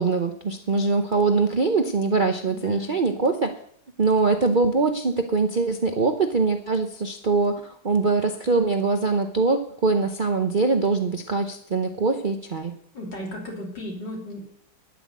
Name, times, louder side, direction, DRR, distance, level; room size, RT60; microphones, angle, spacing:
voice 1, 0.0-3.5 4.0-12.7, right 3 dB, 45° right, 5 dB, 0.6 m, -23 dB
voice 2, 2.4-2.9 12.9-14.4, left 1 dB, 75° left, 0 dB, 3.8 m, -35 dB
12.5 x 6.1 x 9.4 m, 0.63 s
omnidirectional pair, 1.9 m